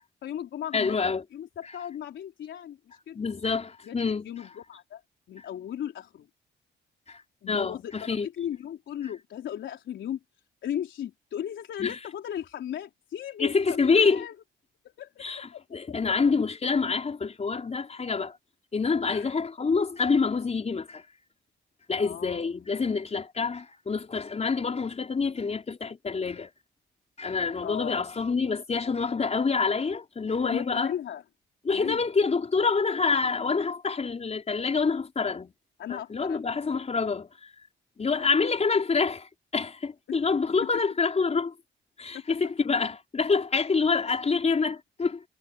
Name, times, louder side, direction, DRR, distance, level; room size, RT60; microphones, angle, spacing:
voice 1, 0.2-1.0 1.3-3.2 3.8-5.0 5.3-6.3 7.4-10.2 10.6-14.4 14.8-16.2 19.1-19.3 22.0-22.5 27.6-28.0 30.4-31.2 31.7-32.0 35.8-36.7 38.2-38.3 40.6-40.8 42.1-42.2, left 10 dB, 70° left, 4.1 m, -36 dB
voice 2, 0.7-1.2 3.1-4.3 7.1-7.2 7.5-8.3 11.8-11.9 13.4-14.2 15.2-18.4 18.7-21.0 21.9-26.5 27.2-30.9 31.6-35.5 35.9-37.3 38.0-41.5 42.0-45.2, left 4 dB, 35° left, 4.8 m, -27 dB
cardioid pair, 90°, 20 cm